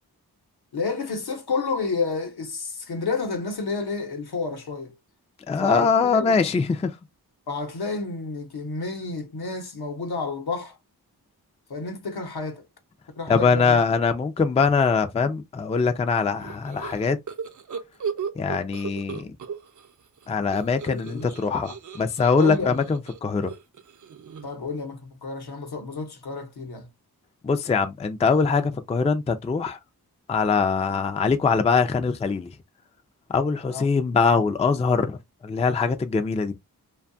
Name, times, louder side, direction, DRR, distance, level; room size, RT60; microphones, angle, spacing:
voice 1, 0.7-4.9 5.6-6.4 7.5-10.8 11.7-12.6 13.2-13.8 20.9-21.4 22.4-22.8 24.4-26.9 33.7-33.9, left 4 dB, 75° left, 0.9 m, -30 dB
voice 2, 5.5-6.9 13.3-17.2 18.4-19.3 20.3-23.5 27.4-29.8 30.3-32.5 33.3-35.2 35.4-36.5, left 5 dB, 20° left, 0.3 m, -22 dB
sound 1, 16.4-19.9 20.2-24.7, right 6 dB, 50° right, 0.5 m, -36 dB
2.6 x 2.3 x 2.5 m
wide cardioid pair, 80°, 38 cm